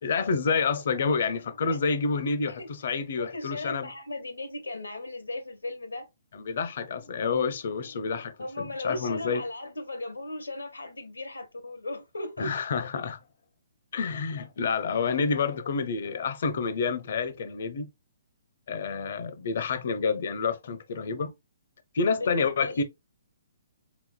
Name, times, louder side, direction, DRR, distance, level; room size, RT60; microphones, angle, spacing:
voice 1, 0.0-3.9 6.5-9.4 12.4-13.2 13.9-17.9 18.7-21.3 21.9-22.8, left 5 dB, 60° left, 0.7 m, -28 dB
voice 2, 3.2-6.1 8.4-12.6 22.2-22.8, left 2 dB, 90° left, 1.1 m, -37 dB
4.2 x 3.7 x 2.2 m
hypercardioid pair, 135°, 0 cm